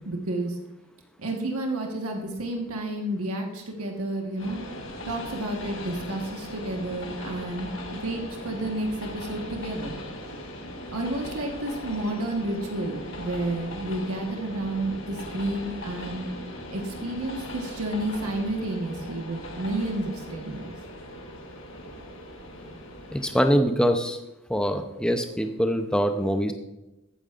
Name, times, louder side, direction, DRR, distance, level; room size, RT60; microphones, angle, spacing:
voice 1, 0.0-0.6 1.2-4.6 5.1-10.0 10.9-16.3 16.7-20.7, right 1 dB, 90° right, 2 dB, 1.4 m, -31 dB
Train, 4.4-23.5, left 1 dB, 60° left, 1.4 m, -39 dB
voice 2, 23.1-24.2 24.5-26.5, equal, 5° left, 7 dB, 0.6 m, -23 dB
14.0 x 8.9 x 2.5 m, 0.97 s
head